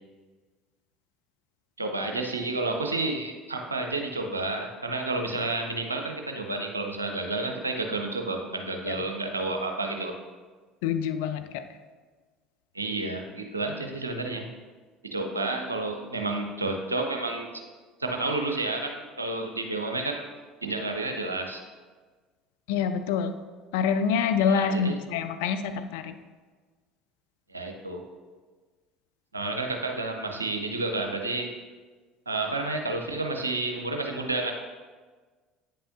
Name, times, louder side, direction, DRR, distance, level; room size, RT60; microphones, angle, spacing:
voice 1, 1.8-10.1 12.7-14.5 15.0-17.5 18.0-20.3 20.6-21.6 24.5-25.0 27.5-28.0 29.3-31.5 32.3-34.5, right 2 dB, 85° right, 3 dB, 0.6 m, -30 dB
voice 2, 10.8-11.7 22.7-23.4 23.7-26.1, left 6 dB, 65° left, 9 dB, 0.4 m, -26 dB
8.4 x 5.5 x 2.6 m, 1.4 s
figure-of-eight pair, 65°, 0 cm